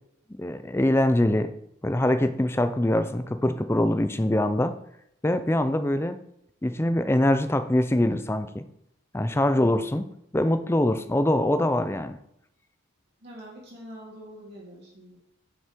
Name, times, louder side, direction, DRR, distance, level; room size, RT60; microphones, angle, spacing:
voice 1, 0.4-1.5 1.8-4.7 5.2-6.2 6.6-8.6 9.1-10.0 10.3-12.2, left 1 dB, 10° left, 10 dB, 0.4 m, -23 dB
voice 2, 13.2-15.2, equal, 55° right, -6 dB, 3.0 m, -44 dB
6.8 x 6.0 x 4.5 m, 0.76 s
head